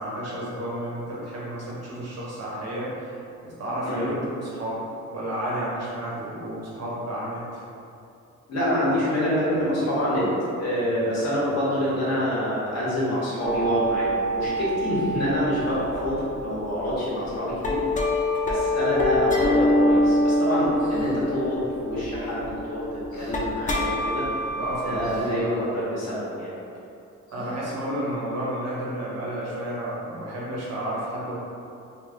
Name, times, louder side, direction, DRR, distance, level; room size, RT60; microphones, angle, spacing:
voice 1, 0.0-3.1 3.4-4.8 5.1-7.6 24.6-25.6 27.3-31.4, right 1 dB, 60° right, -7 dB, 1.0 m, -31 dB
voice 2, 8.5-10.3 10.6-17.8 18.4-22.9 23.2-24.3 24.8-26.5 29.1-29.2, equal, 60° left, -8 dB, 1.2 m, -26 dB
sound 1, 13.4-16.9 17.3-25.2, left 1 dB, 25° left, 0.4 m, -25 dB
sound 2, 20.7-21.2 23.1-23.4 25.0-25.4 27.3-27.8, equal, 85° left, 1.0 m, -45 dB
3.2 x 2.5 x 2.5 m, 2.6 s
cardioid pair, 90°, 30 cm